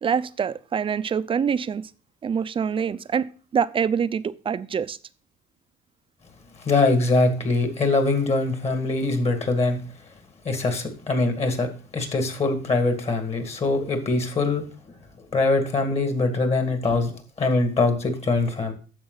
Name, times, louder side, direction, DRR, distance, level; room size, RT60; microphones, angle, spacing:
voice 1, 0.0-1.9 2.2-5.0 16.9-17.0, right 7 dB, 30° right, 0.5 m, -25 dB
voice 2, 6.6-9.8 10.4-14.7 15.3-18.7, left 3 dB, 40° left, 2.1 m, -23 dB
10.5 x 7.1 x 4.0 m
cardioid pair, 110°, 17 cm